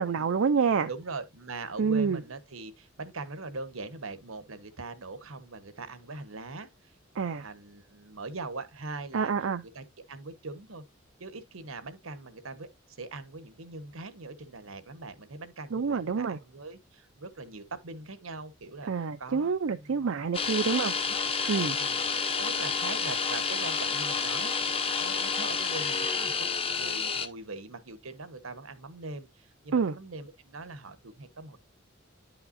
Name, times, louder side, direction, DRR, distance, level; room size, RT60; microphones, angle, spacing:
voice 1, 0.0-0.9 1.8-2.2 7.2-7.5 9.1-9.6 15.7-16.4 18.9-20.9 21.5-21.8 29.7-29.9, right 5 dB, 70° right, 0.5 m, -27 dB
voice 2, 0.9-6.9 7.4-9.3 9.7-10.8 11.2-20.1 21.0-21.1 21.4-22.1 22.4-31.6, right 3 dB, 85° right, 1.2 m, -42 dB
sound 1, 20.3-27.3, left 5 dB, 30° left, 0.8 m, -29 dB
10.5 x 5.7 x 2.6 m
head